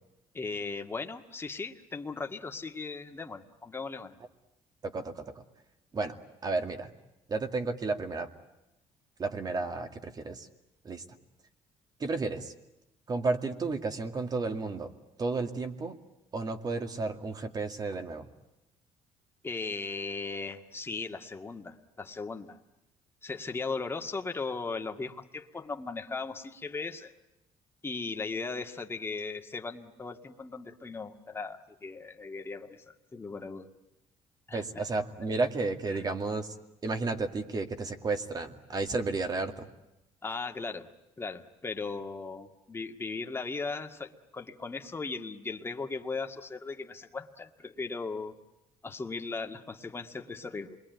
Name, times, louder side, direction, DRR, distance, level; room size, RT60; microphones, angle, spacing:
voice 1, 0.3-4.2 19.4-22.6 23.2-27.1 27.8-32.8 33.1-33.7 34.5-34.8 35.9-36.1 40.2-40.9 41.2-48.4 48.8-50.8, left 4 dB, 20° left, 4 dB, 1.9 m, -37 dB
voice 2, 4.8-5.4 5.9-6.2 6.4-6.9 7.3-8.3 9.2-10.5 10.8-11.0 12.0-12.5 13.1-14.9 15.2-16.0 16.3-18.3 34.5-36.5 36.8-39.7, right 3 dB, 35° right, 6 dB, 2.3 m, -32 dB
28.0 x 22.0 x 9.3 m, 0.93 s
cardioid pair, 105°, 12 cm